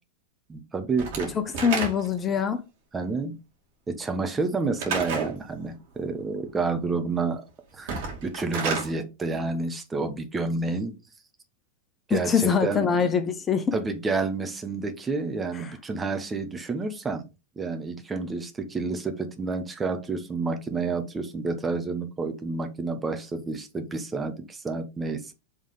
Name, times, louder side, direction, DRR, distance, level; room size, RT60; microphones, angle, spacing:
voice 1, 0.5-1.3 2.9-3.3 3.9-7.4 7.7-10.9 12.1-13.1 13.7-17.2 17.6-25.3, right 3 dB, 15° right, 1.2 m, -29 dB
Slam / Wood, 1.0-2.3 4.8-5.4 7.8-8.9, right 5 dB, 60° right, 2.4 m, -30 dB
voice 2, 1.3-2.6 12.1-13.7 15.6-15.7, left 7 dB, 25° left, 0.8 m, -24 dB
5.7 x 3.6 x 4.9 m
hypercardioid pair, 95°, 0 cm